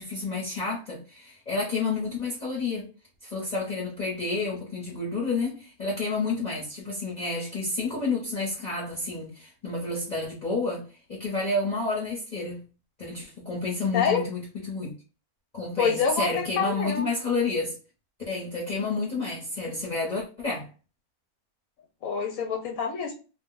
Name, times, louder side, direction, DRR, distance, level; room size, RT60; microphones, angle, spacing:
voice 1, 0.0-2.9 3.2-12.6 13.0-14.9 15.5-17.7 18.3-20.7, left 3 dB, 35° left, 0.9 m, -30 dB
voice 2, 15.8-17.1 22.0-23.1, left 6 dB, 70° left, 1.0 m, -26 dB
2.5 x 2.3 x 3.7 m
omnidirectional pair, 1.6 m